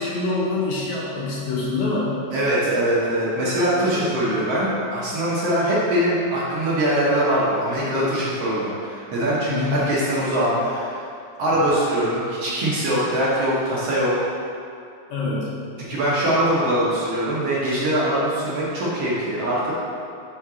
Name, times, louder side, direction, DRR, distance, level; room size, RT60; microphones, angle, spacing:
voice 1, 0.0-2.2 3.9-4.4 9.5-9.8 15.1-15.6, left 3 dB, 70° left, -6 dB, 2.3 m, -26 dB
voice 2, 2.3-11.0 11.4-14.1 15.8-19.7, right 1 dB, 60° right, -8 dB, 2.0 m, -22 dB
5.6 x 4.4 x 6.1 m, 2.5 s
omnidirectional pair, 3.6 m